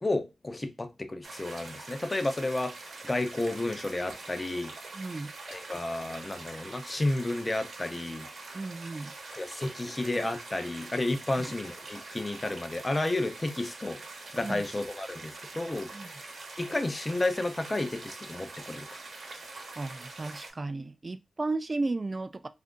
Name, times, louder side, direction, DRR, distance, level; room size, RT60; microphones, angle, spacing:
voice 1, 0.0-2.7 3.0-4.7 5.5-8.3 9.3-14.0 14.3-15.9 16.6-18.9, left 2 dB, 25° left, 0.6 m, -31 dB
sound 1, 1.2-20.5, right 3 dB, 70° right, 0.9 m, -44 dB
voice 2, 4.9-5.3 8.5-9.1 11.4-11.5 14.4-14.6 15.9-16.1 19.8-22.5, right 3 dB, 35° right, 0.3 m, -34 dB
2.6 x 2.5 x 3.6 m
cardioid pair, 70°, 0 cm